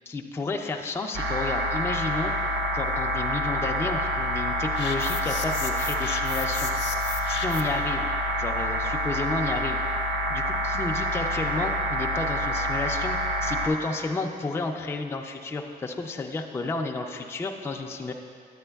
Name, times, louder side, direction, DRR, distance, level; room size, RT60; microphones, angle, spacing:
voice 1, 0.1-6.7 7.3-8.1 8.4-9.8 10.3-18.1, left 3 dB, 15° left, 2 dB, 0.3 m, -31 dB
sound 1, 1.1-13.7, equal, 90° right, 0.8 m, -27 dB
sound 2, 4.8-7.8, left 7 dB, 80° left, 0.6 m, -35 dB
9.7 x 8.6 x 2.3 m, 2.3 s
cardioid pair, 140°, 18 cm